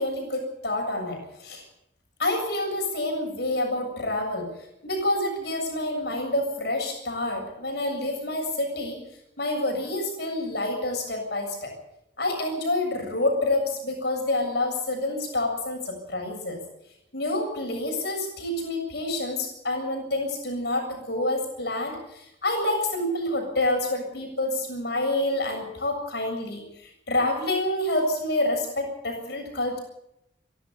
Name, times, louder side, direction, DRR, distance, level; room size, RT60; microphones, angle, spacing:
voice 1, 0.0-1.6 2.2-4.5 4.8-9.0 9.4-11.7 12.2-16.6 17.1-29.8, left 1 dB, 60° left, 3 dB, 7.3 m, -28 dB
29.5 x 12.0 x 7.1 m, 0.82 s
head